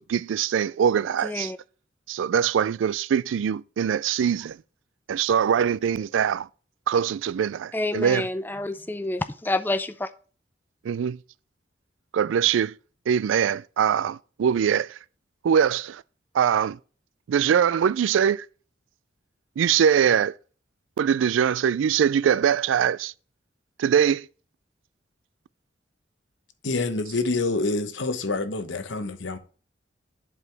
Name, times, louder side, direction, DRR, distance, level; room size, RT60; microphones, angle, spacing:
voice 1, 0.0-1.5 2.1-4.6 5.1-6.5 6.9-8.3 10.9-11.2 12.1-12.7 13.1-14.9 15.4-16.0 16.3-16.8 17.3-18.4 19.6-20.3 21.0-23.1 23.8-24.3, right 8 dB, 85° right, 0.3 m, -22 dB
voice 2, 1.2-1.6 7.7-10.1, left 2 dB, 10° left, 0.4 m, -28 dB
voice 3, 26.6-29.4, left 3 dB, 75° left, 0.9 m, -27 dB
11.0 x 4.8 x 3.3 m
head